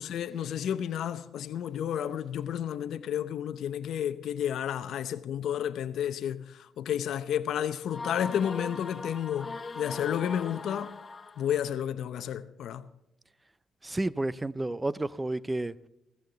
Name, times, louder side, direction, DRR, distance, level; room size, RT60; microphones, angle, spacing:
voice 1, 0.0-11.0 11.4-12.9, left 9 dB, 70° left, 0.7 m, -31 dB
sound 1, 7.9-11.7, left 3 dB, 30° left, 0.9 m, -40 dB
voice 2, 13.8-15.9, right 2 dB, 15° right, 0.6 m, -31 dB
15.5 x 14.5 x 4.0 m
cardioid pair, 90°, 0 cm